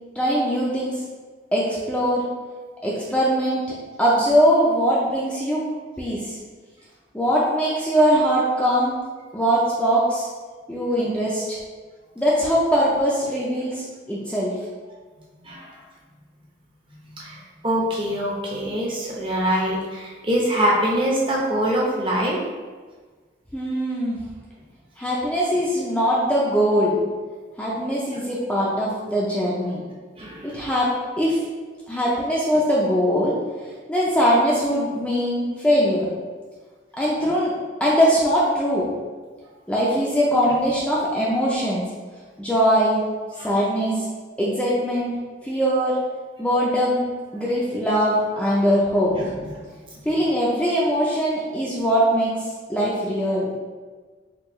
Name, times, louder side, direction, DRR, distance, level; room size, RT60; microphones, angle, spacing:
voice 1, 0.2-1.0 1.5-2.3 2.8-3.6 4.0-5.6 6.0-6.4 7.1-8.9 9.3-10.3 10.7-11.6 12.2-14.5 23.5-24.2 25.0-27.0 27.6-29.8 30.4-30.9 31.2-31.4 31.9-33.3 33.9-36.1 36.9-37.5 37.8-38.9 39.7-41.8 42.4-43.0 43.4-44.1 44.4-45.1 45.4-46.0 46.4-47.0 47.3-49.1 50.1-53.5, equal, 5° left, -6 dB, 0.4 m, -21 dB
voice 2, 15.4-15.8 17.2-22.4 28.1-28.2 30.2-30.6 43.4-43.5 49.1-49.5, right 1 dB, 25° right, -3 dB, 0.7 m, -24 dB
4.4 x 2.3 x 3.0 m, 1.4 s
head